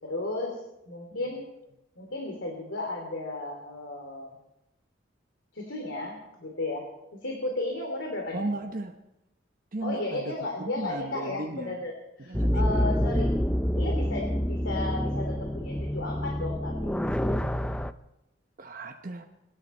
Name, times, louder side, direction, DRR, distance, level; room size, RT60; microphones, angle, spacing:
voice 1, 0.0-0.6 0.9-1.4 2.0-4.4 5.5-6.8 7.1-8.4 9.8-11.9 12.2-13.3 13.7-17.0, left 2 dB, 85° left, 1 dB, 3.1 m, -34 dB
voice 2, 8.3-9.0 9.7-10.3 10.6-11.8 12.3-13.0 18.6-19.2, right 2 dB, 45° right, 4 dB, 0.9 m, -36 dB
sound 1, 12.3-17.9, equal, 5° left, 0.5 m, -27 dB
24.5 x 11.5 x 4.4 m, 0.91 s
head